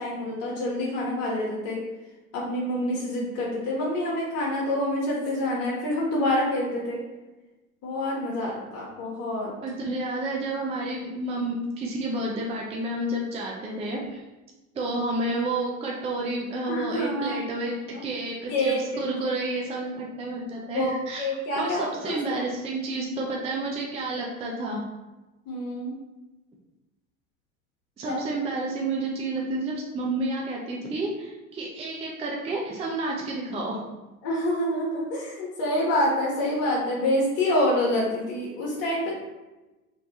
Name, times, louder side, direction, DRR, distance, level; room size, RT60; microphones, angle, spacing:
voice 1, 0.0-1.8 2.3-7.0 7.8-9.5 16.6-17.6 18.5-19.0 20.7-22.4 25.5-25.9 28.0-28.3 34.2-39.2, left 1 dB, 50° left, -5 dB, 1.1 m, -27 dB
voice 2, 9.6-14.2 14.7-17.8 18.0-21.3 21.6-24.8 28.0-33.9, right 2 dB, 15° right, -2 dB, 0.5 m, -30 dB
3.2 x 3.2 x 2.7 m, 1.1 s
hypercardioid pair, 85°, 43 cm